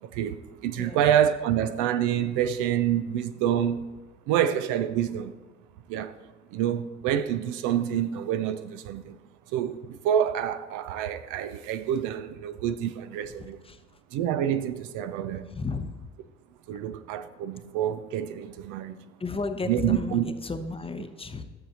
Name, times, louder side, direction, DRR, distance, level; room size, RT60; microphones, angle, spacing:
voice 1, 0.0-3.9 4.3-5.3 5.9-6.1 6.5-9.2 9.5-13.6 14.1-15.5 16.7-19.0 19.7-20.3, right 10 dB, 60° right, 0.6 m, -27 dB
voice 2, 0.7-1.1 13.4-13.8 15.5-15.9 19.2-21.4, left 4 dB, 15° left, 0.8 m, -33 dB
13.5 x 6.8 x 2.9 m
hypercardioid pair, 65°, 35 cm